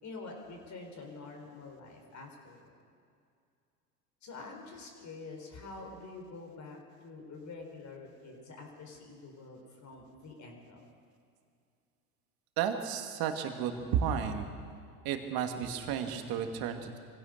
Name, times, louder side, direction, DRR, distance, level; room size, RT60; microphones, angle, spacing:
voice 1, 0.0-2.8 4.2-10.8, left 3 dB, 35° left, 2 dB, 4.9 m, -47 dB
voice 2, 12.6-14.5 15.0-17.0, right 8 dB, 50° right, 5 dB, 2.5 m, -32 dB
24.0 x 16.0 x 6.8 m, 2.4 s
hypercardioid pair, 80°, 46 cm